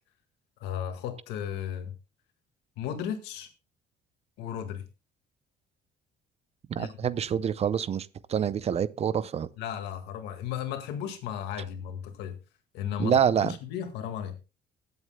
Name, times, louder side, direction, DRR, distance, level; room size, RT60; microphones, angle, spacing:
voice 1, 0.6-1.9 2.8-3.5 4.4-4.8 6.8-6.9 9.6-12.4 12.7-14.4, left 9 dB, 90° left, 1.8 m, -35 dB
voice 2, 6.7-9.5 13.0-13.5, right 8 dB, 40° right, 0.5 m, -26 dB
20.5 x 8.0 x 2.2 m
cardioid pair, 110°, 17 cm